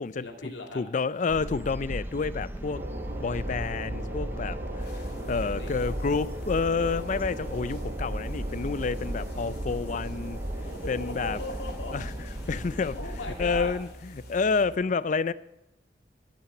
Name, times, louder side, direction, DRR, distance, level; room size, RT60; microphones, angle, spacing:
voice 1, 0.2-0.8 5.1-5.7 10.6-12.0 12.3-12.6 12.9-13.7, left 2 dB, 80° left, 2.2 m, -39 dB
voice 2, 0.7-2.8 3.2-5.0 5.3-10.4 10.9-11.4 11.9-12.1 12.5-13.0 13.4-15.3, left 4 dB, 40° left, 0.4 m, -29 dB
sound 1, 1.3-13.7, right 1 dB, 10° right, 0.7 m, -36 dB
sound 2, 2.7-14.8, right 1 dB, 40° right, 1.2 m, -40 dB
sound 3, 4.8-14.6, left 4 dB, 60° left, 2.2 m, -55 dB
12.5 x 5.9 x 7.7 m
head